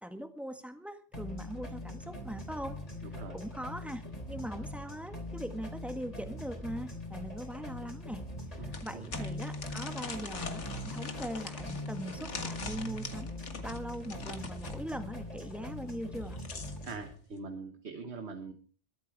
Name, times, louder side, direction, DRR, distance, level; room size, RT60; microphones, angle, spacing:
voice 1, 0.0-2.8 3.3-4.0 4.3-8.2 8.6-13.3 13.6-16.4, equal, ahead, 7 dB, 1.7 m, -41 dB
sound 1, 1.1-17.1, left 1 dB, 30° left, 3.4 m, -42 dB
sound 2, 7.2-7.3 7.8-7.9 8.7-14.8 16.0-17.0, left 4 dB, 85° left, 2.0 m, -43 dB
voice 2, 8.6-9.3 16.8-18.5, right 4 dB, 65° right, 6 dB, 1.7 m, -43 dB
23.0 x 8.4 x 4.8 m, 0.40 s
omnidirectional pair, 1.2 m